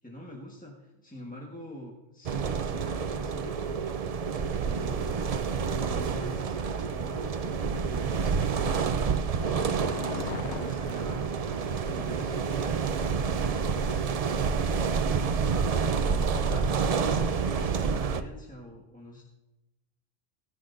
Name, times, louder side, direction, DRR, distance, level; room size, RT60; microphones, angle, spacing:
voice 1, 0.0-3.8 4.3-5.3 5.7-11.3 11.8-14.2 14.8-15.5 16.0-19.2, left 1 dB, 5° left, -3 dB, 1.2 m, -45 dB
sound 1, 2.2-18.2, right 5 dB, 70° right, 0.3 m, -28 dB
sound 2, 8.4-12.1 12.4-12.5, left 8 dB, 65° left, 0.8 m, -42 dB
16.0 x 10.0 x 2.6 m, 1.0 s
omnidirectional pair, 1.3 m